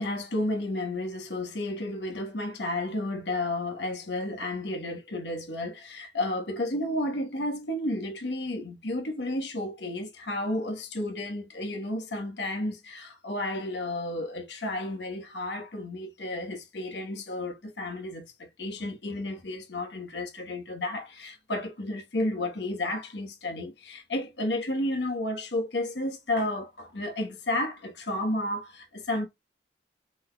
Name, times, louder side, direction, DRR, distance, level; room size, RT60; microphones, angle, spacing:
voice 1, 0.0-29.3, left 1 dB, 80° left, 1.4 m, -32 dB
4.9 x 4.0 x 2.4 m
head